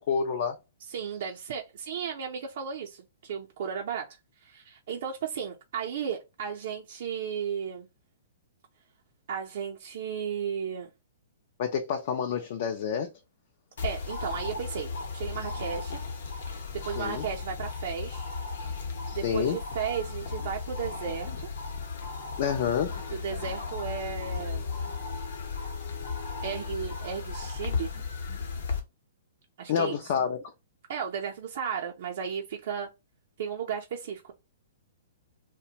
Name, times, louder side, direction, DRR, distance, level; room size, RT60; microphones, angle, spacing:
voice 1, 0.1-0.6 11.6-13.1 17.0-17.3 19.1-19.6 22.4-22.9 29.7-30.4, left 7 dB, 50° left, 0.4 m, -28 dB
voice 2, 0.9-4.2 4.4-7.9 9.3-10.9 13.8-16.0 16.8-18.2 19.1-21.3 23.1-24.7 26.4-27.9 29.6-30.0 30.9-32.9 33.4-34.3, right 7 dB, 60° right, 0.5 m, -34 dB
sound 1, 13.8-28.8, left 4 dB, 65° left, 0.8 m, -35 dB
2.5 x 2.1 x 2.8 m
hypercardioid pair, 150°, 0 cm